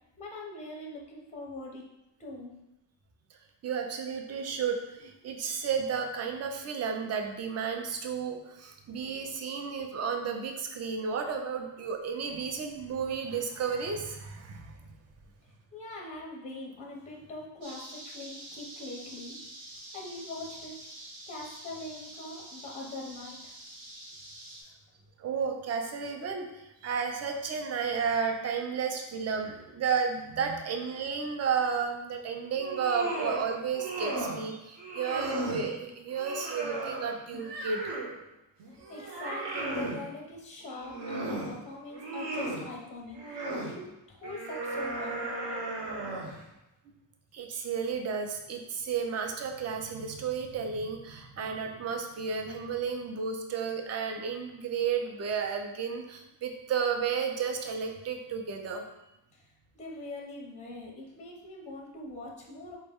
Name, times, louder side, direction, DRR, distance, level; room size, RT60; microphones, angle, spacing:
voice 1, 0.2-1.9 2.2-2.5 15.7-19.4 19.9-20.8 21.3-23.6 38.9-45.3 59.3-59.5 59.7-62.8, left 2 dB, 15° left, -1 dB, 0.5 m, -42 dB
voice 2, 3.6-15.0 25.2-38.0 47.3-58.8, right 6 dB, 40° right, 4 dB, 0.4 m, -32 dB
sound 1, 17.6-24.6, right 1 dB, 90° right, 1.0 m, -46 dB
sound 2, 32.5-33.4 33.7-34.4 34.8-35.7 36.1-38.2 38.6-40.0 40.7-41.5 41.9-42.6 43.1-43.7 44.2-46.4, right 2 dB, 65° right, 0.9 m, -35 dB
4.2 x 2.1 x 3.5 m, 0.91 s
wide cardioid pair, 150°, 45 cm